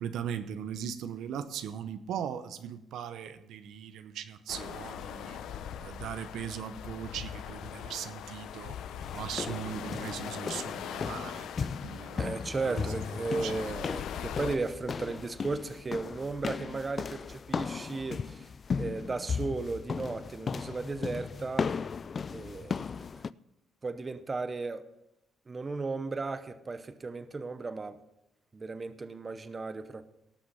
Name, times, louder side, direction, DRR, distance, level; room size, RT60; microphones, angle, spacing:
voice 1, 0.0-5.4 5.8-8.8 9.1-12.4 12.6-12.8 13.2-13.8, right 8 dB, 80° right, 0.8 m, -39 dB
sound 1, 4.5-14.6, left 9 dB, 80° left, 0.6 m, -41 dB
sound 2, 9.0-23.3, left 5 dB, 40° left, 0.3 m, -36 dB
voice 2, 12.2-18.5 18.8-21.7 22.3-23.1 23.8-24.9 25.5-28.0 28.5-30.0, right 3 dB, 30° right, 0.7 m, -35 dB
18.0 x 6.2 x 5.6 m
cardioid pair, 90°, 0 cm